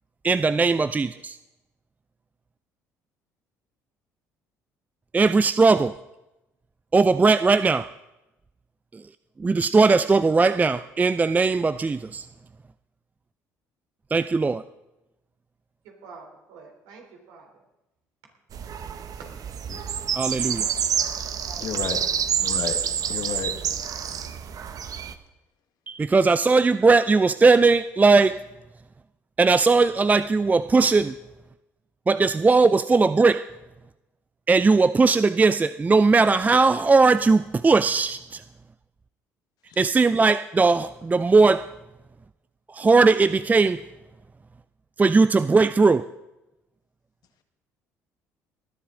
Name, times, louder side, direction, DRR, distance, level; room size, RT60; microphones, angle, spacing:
voice 1, 0.2-1.4 5.1-5.9 6.9-7.9 9.4-12.3 14.1-14.6 20.1-20.7 25.9-28.4 29.4-31.1 32.1-33.5 34.5-38.4 39.8-41.7 42.7-43.8 45.0-46.1, right 4 dB, 20° right, 14 dB, 0.4 m, -19 dB
voice 2, 15.8-17.6 19.2-19.3 21.4-21.7, right 4 dB, 75° right, 1 dB, 3.5 m, -46 dB
sound 1, 18.5-25.1, right 8 dB, 50° right, 1.0 m, -28 dB
voice 3, 21.6-22.1 22.4-22.8 23.1-23.5 39.7-39.8, left 8 dB, 60° left, 6 dB, 1.6 m, -32 dB
19.5 x 11.5 x 3.8 m, 0.97 s
hypercardioid pair, 60°, 8 cm